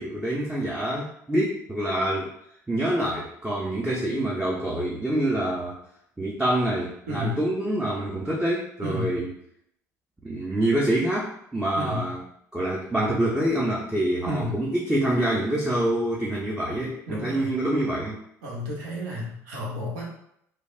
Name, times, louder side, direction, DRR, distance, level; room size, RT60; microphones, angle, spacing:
voice 1, 0.0-2.3 2.7-5.8 6.2-9.3 10.2-12.2 12.5-18.2, right 1 dB, 10° right, -4 dB, 0.6 m, -26 dB
voice 2, 7.1-7.4 8.8-9.2 11.7-12.1 14.2-14.6 17.1-17.6 18.4-20.1, left 1 dB, 65° right, -3 dB, 0.8 m, -32 dB
3.3 x 2.3 x 2.4 m, 0.73 s
figure-of-eight pair, 60°, 9 cm